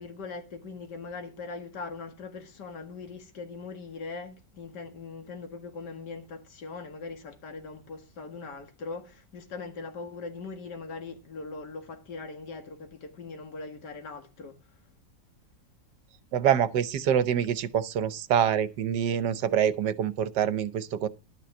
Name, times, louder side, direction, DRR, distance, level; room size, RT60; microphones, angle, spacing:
voice 1, 0.0-14.6, left 4 dB, 70° left, 2.4 m, -41 dB
voice 2, 16.3-21.1, right 9 dB, 75° right, 1.5 m, -26 dB
11.5 x 6.2 x 7.0 m
omnidirectional pair, 1.9 m